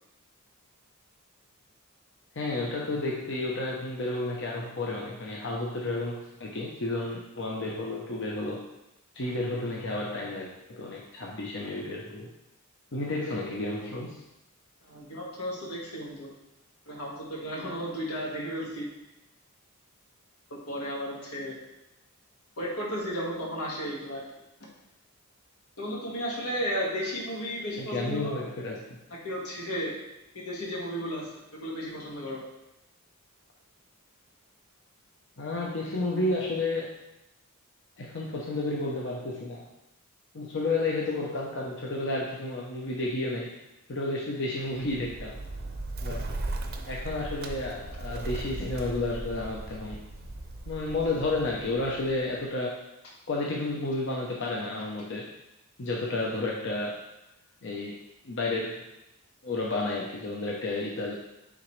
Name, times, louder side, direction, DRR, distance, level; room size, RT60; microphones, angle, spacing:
voice 1, 2.3-8.6 9.1-12.3 12.9-14.2 27.8-28.8 35.4-36.9 38.0-39.6 40.3-43.5 43.9-45.4 46.0-46.3 46.9-50.0 50.7-52.7 53.3-55.3 55.8-57.0 57.6-58.8 59.4-61.1, left 2 dB, 55° left, -3 dB, 0.8 m, -31 dB
voice 2, 14.8-16.3 16.9-18.9 20.5-21.6 22.6-24.2 25.8-28.5 29.2-29.9 30.3-32.4, equal, 90° left, -3 dB, 1.8 m, -34 dB
Bird, 44.7-52.5, right 2 dB, 45° right, 0.6 m, -37 dB
9.2 x 3.9 x 3.2 m, 0.93 s
head